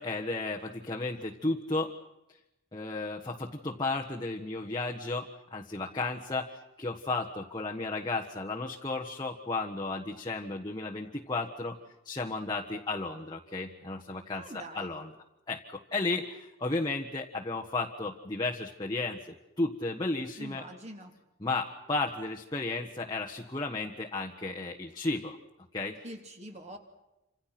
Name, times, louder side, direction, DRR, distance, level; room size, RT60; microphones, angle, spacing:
voice 1, 0.0-1.9 2.7-11.8 12.0-15.1 15.5-20.6 21.4-25.4 25.7-26.0, left 3 dB, 20° left, -1 dB, 1.5 m, -34 dB
voice 2, 14.3-14.9 20.4-21.1 26.0-26.8, right 1 dB, 30° right, 4 dB, 3.3 m, -44 dB
28.5 x 27.0 x 6.0 m, 0.93 s
head